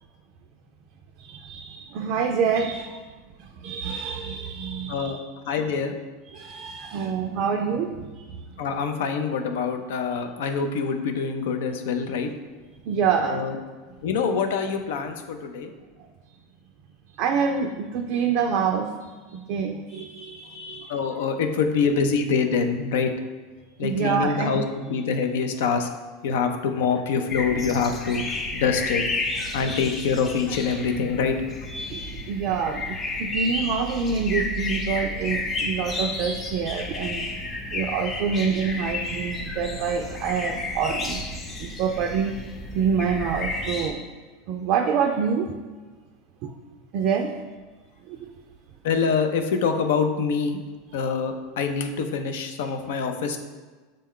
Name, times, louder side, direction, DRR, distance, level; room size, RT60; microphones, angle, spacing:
voice 1, 1.2-3.0 3.6-5.2 5.5-5.6 6.3-8.2 12.9-13.5 17.2-18.9 19.3-21.0 23.8-24.6 31.7-37.2 37.7-41.2 41.6-42.3 42.7-44.0 44.5-45.5 46.4-46.5 46.9-47.3 48.1-48.3, right 6 dB, 55° right, 3 dB, 0.3 m, -26 dB
voice 2, 5.5-5.9 8.6-12.3 13.2-13.6 14.0-15.7 20.9-23.1 23.8-25.9 26.2-28.2 28.5-29.0 29.3-31.4 48.8-50.6 50.9-53.4, left 5 dB, 75° left, 6 dB, 0.5 m, -25 dB
sound 1, 27.3-43.9, left 2 dB, 30° left, 0.7 m, -32 dB
6.3 x 2.2 x 3.6 m, 1.3 s
hypercardioid pair, 110°, 0 cm